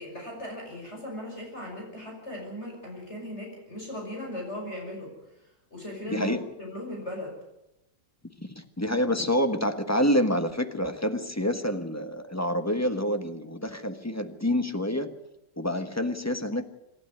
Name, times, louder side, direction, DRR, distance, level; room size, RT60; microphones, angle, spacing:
voice 1, 0.0-5.1 5.4-7.3, left 1 dB, 35° left, -1 dB, 6.4 m, -38 dB
voice 2, 6.1-6.4 8.4-15.1 15.6-16.6, equal, 10° left, 8 dB, 1.2 m, -27 dB
26.5 x 12.5 x 9.5 m, 0.92 s
omnidirectional pair, 2.0 m